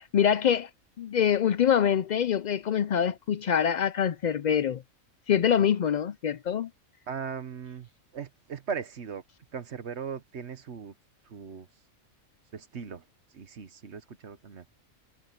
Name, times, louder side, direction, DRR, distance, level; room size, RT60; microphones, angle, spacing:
voice 1, 0.1-0.7 1.0-4.8 5.3-6.7, left 8 dB, 90° left, 0.3 m, -25 dB
voice 2, 7.1-9.2 9.5-10.9 11.2-11.7 12.5-13.0 13.3-14.6, right 6 dB, 60° right, 1.3 m, -38 dB
omnidirectional pair, 1.4 m